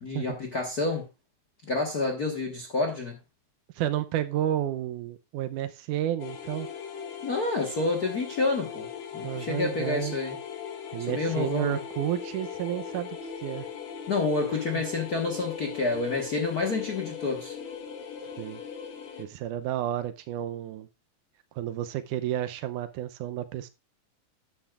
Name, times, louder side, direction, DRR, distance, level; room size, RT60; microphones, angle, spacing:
voice 1, 0.0-1.1 1.7-3.2 7.2-8.9 9.1-10.4 11.1-11.8 14.1-17.5, left 3 dB, 45° left, 1.2 m, -29 dB
voice 2, 3.8-6.7 9.2-10.2 10.9-13.7 14.5-14.8 18.4-18.6 19.2-20.9 21.6-23.7, right 12 dB, 80° right, 2.2 m, -31 dB
sound 1, 6.2-19.2, left 7 dB, 60° left, 2.5 m, -39 dB
13.0 x 9.6 x 2.4 m
omnidirectional pair, 3.7 m